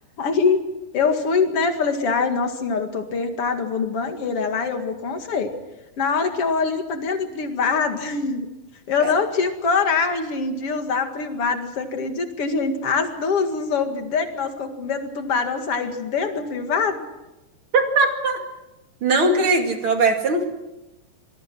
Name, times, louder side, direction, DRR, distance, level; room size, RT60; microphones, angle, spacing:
voice 1, 0.2-0.7 0.9-5.5 6.0-8.5 8.9-17.1, left 5 dB, 45° left, 6 dB, 2.4 m, -23 dB
voice 2, 17.7-18.4 19.0-20.5, right 3 dB, 40° right, 4 dB, 2.8 m, -20 dB
26.0 x 21.5 x 6.2 m, 0.99 s
omnidirectional pair, 4.4 m